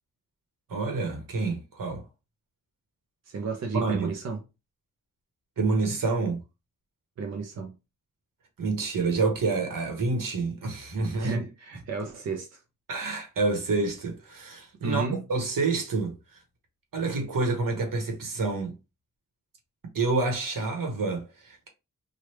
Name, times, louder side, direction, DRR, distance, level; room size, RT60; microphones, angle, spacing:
voice 1, 0.7-2.0 3.7-4.1 5.6-6.4 8.6-11.4 12.9-16.4 16.9-18.7 19.9-21.7, right 3 dB, 80° right, 1.1 m, -28 dB
voice 2, 3.3-4.4 7.2-7.8 11.2-12.6 14.8-15.2, right 4 dB, 50° right, 0.6 m, -32 dB
3.2 x 2.3 x 3.0 m
wide cardioid pair, 150°, 33 cm